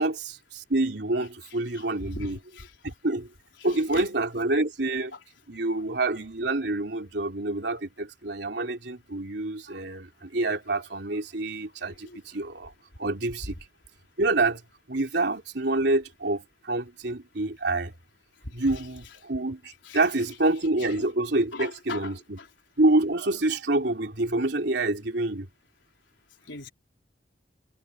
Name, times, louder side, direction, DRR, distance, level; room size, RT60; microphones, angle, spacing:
voice 1, 0.0-2.4 2.8-3.3 3.6-5.1 5.5-12.7 13.0-13.6 14.2-14.6 14.9-17.9 18.5-22.4 22.8-25.5, right 2 dB, 65° right, 3.2 m, -27 dB
voice 2, 2.1-2.9 3.9-4.0 19.9-20.0 21.0-21.1 21.5-22.1 26.5-26.7, left 3 dB, 90° left, 4.1 m, -38 dB
head